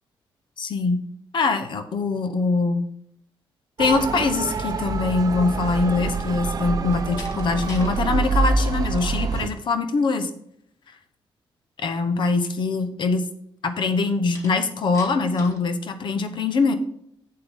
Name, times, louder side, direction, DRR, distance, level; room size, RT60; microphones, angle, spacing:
voice 1, 0.6-1.0 1.3-2.9 3.8-10.3 11.8-13.3 13.6-16.7, left 4 dB, 55° left, 10 dB, 0.9 m, -23 dB
Motor vehicle (road) / Siren, 3.8-9.5, right 4 dB, 40° right, 0.7 m, -26 dB
Slam, 6.8-7.9 8.3-8.7 14.3-15.7, left 1 dB, 35° left, 1.8 m, -43 dB
7.7 x 7.6 x 3.6 m, 0.68 s
cardioid pair, 110°, 9 cm